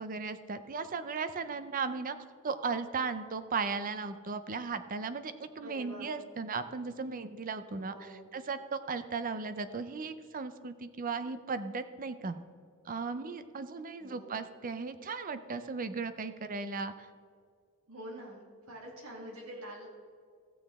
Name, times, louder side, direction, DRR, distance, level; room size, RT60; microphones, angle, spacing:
voice 1, 0.0-2.2 2.4-12.3 12.9-17.1, right 4 dB, 40° right, 11 dB, 0.5 m, -36 dB
voice 2, 5.6-6.1 7.9-8.3 14.0-14.4 17.9-18.4 18.7-19.9, right 1 dB, 75° right, -1 dB, 2.4 m, -46 dB
15.0 x 7.0 x 3.5 m, 2.1 s
head